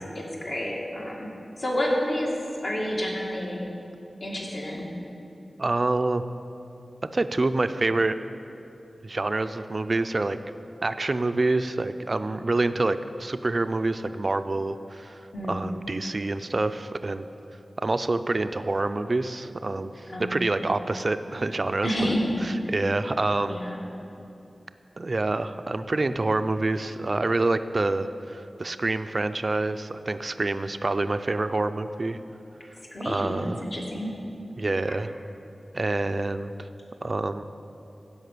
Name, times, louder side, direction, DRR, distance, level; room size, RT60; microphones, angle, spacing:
voice 1, 0.2-1.3 1.6-2.3 2.6-3.7 4.2-4.9 15.3-15.6 20.1-20.6 21.8-22.3 22.6-22.7 23.5-23.8 32.9-34.1 34.9-35.0, equal, 55° left, -3 dB, 2.3 m, -29 dB
voice 2, 5.6-6.2 7.1-8.2 9.0-10.4 10.8-15.2 15.5-17.3 17.8-22.1 22.4-23.6 25.0-32.2 33.0-33.6 34.6-35.1 35.7-36.5 37.0-37.4, right 2 dB, 45° right, 11 dB, 0.4 m, -27 dB
16.0 x 5.4 x 6.8 m, 2.8 s
wide cardioid pair, 80°, 0 cm